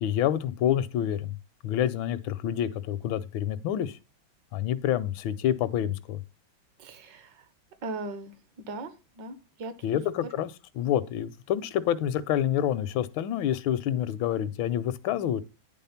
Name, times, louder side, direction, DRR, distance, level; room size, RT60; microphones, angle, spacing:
voice 1, 0.0-1.4 1.6-4.0 4.5-6.2 9.8-10.5 10.8-15.4, left 10 dB, 85° left, 1.4 m, -27 dB
voice 2, 6.8-7.5 7.8-10.0, right 2 dB, 70° right, 1.5 m, -39 dB
10.0 x 3.7 x 5.6 m
omnidirectional pair, 2.1 m